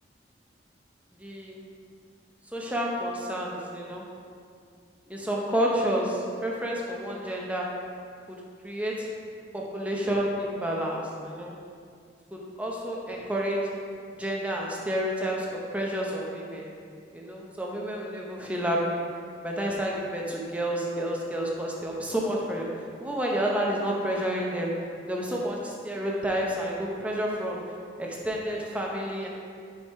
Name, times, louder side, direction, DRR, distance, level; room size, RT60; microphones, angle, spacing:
voice 1, 1.2-1.6 2.5-4.0 5.1-7.7 8.6-9.1 9.5-11.5 12.3-13.6 14.2-16.7 17.1-19.0 19.4-22.7 23.0-24.7 25.1-27.6 28.0-29.3, equal, 10° right, -2 dB, 0.7 m, -30 dB
5.3 x 4.8 x 4.2 m, 2.2 s
head